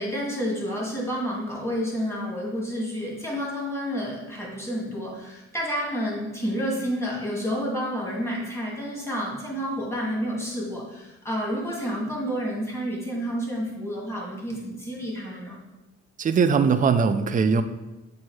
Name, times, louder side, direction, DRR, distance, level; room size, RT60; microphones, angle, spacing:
voice 1, 0.0-15.6, equal, 10° left, -3 dB, 2.0 m, -30 dB
voice 2, 16.2-17.6, right 5 dB, 25° right, 9 dB, 0.4 m, -20 dB
7.5 x 2.7 x 4.7 m, 1.0 s
cardioid pair, 90°, 30 cm